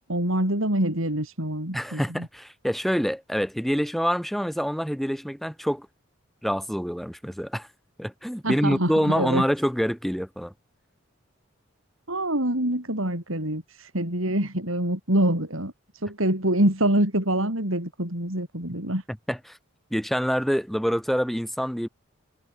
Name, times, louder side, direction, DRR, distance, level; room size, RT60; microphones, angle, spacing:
voice 1, 0.1-2.3 8.4-9.4 12.1-15.7 16.0-19.0, right 1 dB, 80° right, 7.8 m, -25 dB
voice 2, 1.7-5.9 6.4-7.7 8.0-10.5 19.3-19.6 19.9-21.9, equal, ahead, 5.2 m, -26 dB
head